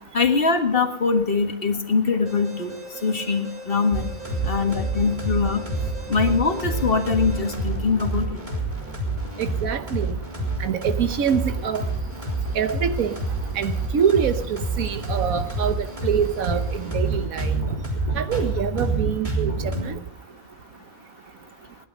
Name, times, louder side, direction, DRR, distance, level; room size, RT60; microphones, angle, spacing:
voice 1, 0.1-2.7 3.0-4.1 4.5-5.6 6.1-8.4, left 4 dB, 40° left, 5 dB, 1.9 m, -22 dB
Alarm, 2.3-7.5, right 2 dB, 65° right, 8.2 m, -40 dB
sound 1, 3.9-19.8, right 2 dB, 30° right, 4.1 m, -28 dB
voice 2, 9.4-10.2 10.6-11.8 12.5-13.2 13.5-17.7 18.1-19.5 19.8-20.0, right 8 dB, 80° right, 10 dB, 1.4 m, -25 dB
19.5 x 11.5 x 5.4 m, 0.80 s
omnidirectional pair, 1.5 m